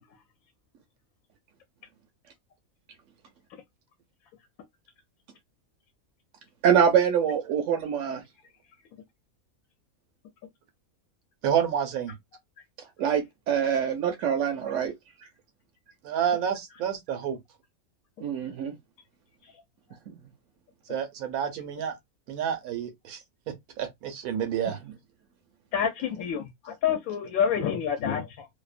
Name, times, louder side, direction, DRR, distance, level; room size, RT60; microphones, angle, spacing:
voice 1, 6.6-8.2 13.0-14.9 18.2-18.7 24.8-24.9, right 8 dB, 70° right, 0.8 m, -24 dB
voice 2, 11.4-12.1 16.0-17.4 20.9-21.9 22.3-23.2 23.8-24.8, right 8 dB, 85° right, 1.2 m, -29 dB
voice 3, 25.7-28.5, left 8 dB, 80° left, 1.0 m, -28 dB
2.8 x 2.1 x 2.4 m
omnidirectional pair, 1.5 m